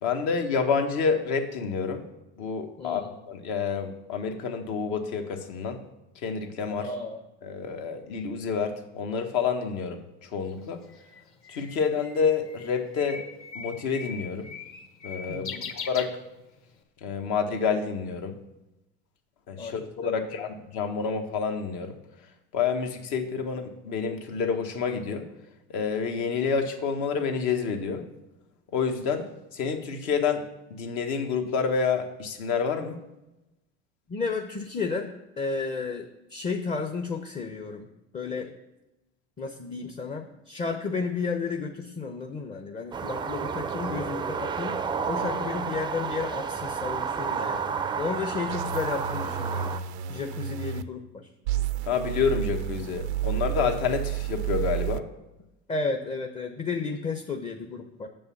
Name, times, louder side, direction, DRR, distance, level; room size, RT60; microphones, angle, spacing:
voice 1, 0.0-2.1 2.4-5.8 6.2-6.9 7.4-10.8 11.5-13.2 13.5-14.5 15.0-16.1 17.0-18.3 19.5-21.9 22.5-25.3 25.7-28.0 28.7-29.3 29.5-33.0 51.8-55.1, left 6 dB, 60° left, 5 dB, 1.4 m, -28 dB
voice 2, 2.8-3.1 6.8-7.2 15.3-15.7 19.6-20.5 34.1-37.9 38.1-38.6 39.4-47.6 48.0-49.7 50.1-51.3 55.7-58.1, left 4 dB, 20° left, 5 dB, 0.7 m, -33 dB
Bird, 10.5-16.7, left 5 dB, 40° left, 1.3 m, -41 dB
sound 1, 42.9-49.8, right 6 dB, 15° right, 0.4 m, -31 dB
sound 2, 48.5-50.8 51.5-55.0, right 11 dB, 90° right, 0.5 m, -31 dB
6.2 x 5.5 x 7.0 m, 0.96 s
supercardioid pair, 100°, 32 cm